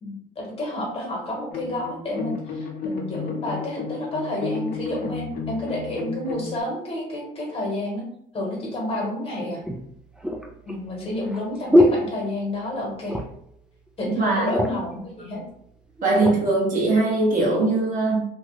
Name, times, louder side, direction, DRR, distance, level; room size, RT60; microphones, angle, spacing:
voice 1, 0.0-8.0 8.3-9.6 10.6-13.2 14.0-15.4, left 1 dB, 35° left, -2 dB, 1.3 m, -30 dB
sound 1, 1.5-6.6, left 5 dB, 60° left, 0.7 m, -32 dB
sound 2, 8.7-8.8 9.6-12.7 13.0-13.5 13.9-14.0 14.3-15.0 15.7-16.4 17.0-17.2, equal, 5° right, 0.4 m, -23 dB
voice 2, 14.2-14.5 16.0-18.2, right 2 dB, 50° right, -3 dB, 1.2 m, -21 dB
2.8 x 2.3 x 3.1 m, 0.71 s
cardioid pair, 110°, 17 cm